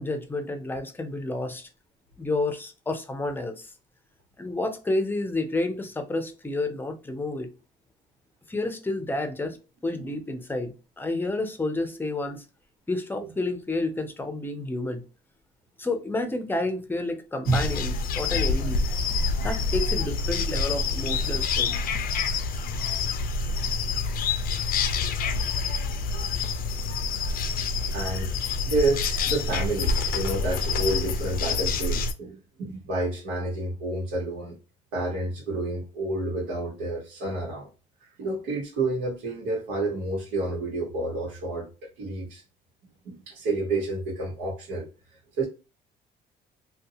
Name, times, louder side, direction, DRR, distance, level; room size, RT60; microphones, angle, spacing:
voice 1, 0.0-1.7 2.2-3.7 4.4-7.5 8.5-9.6 9.8-12.4 12.9-15.0 15.8-18.8 19.4-21.8, left 2 dB, 10° left, 0.6 m, -30 dB
sound 1, 17.5-32.1, left 4 dB, 60° left, 0.4 m, -27 dB
voice 2, 27.9-28.3 28.6-34.5 34.9-37.7 38.2-42.4 43.0-44.9 45.4-45.5, right 2 dB, 85° right, 1.1 m, -29 dB
2.6 x 2.3 x 2.6 m
cardioid pair, 110°, 17 cm